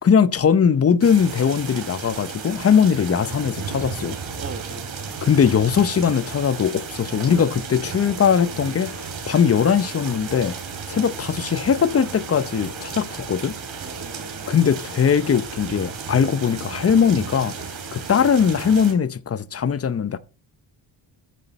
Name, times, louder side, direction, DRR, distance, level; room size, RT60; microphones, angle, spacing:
voice 1, 0.0-4.2 5.2-10.5 10.9-13.5 14.5-17.5 17.9-20.2, left 7 dB, 30° left, 0.7 m, -20 dB
sound 1, 1.0-18.9, right 5 dB, 75° right, 3.1 m, -34 dB
voice 2, 4.4-5.2 8.6-8.8 13.8-14.5, right 5 dB, 30° right, 1.4 m, -40 dB
13.5 x 6.0 x 4.1 m
cardioid pair, 90°, 46 cm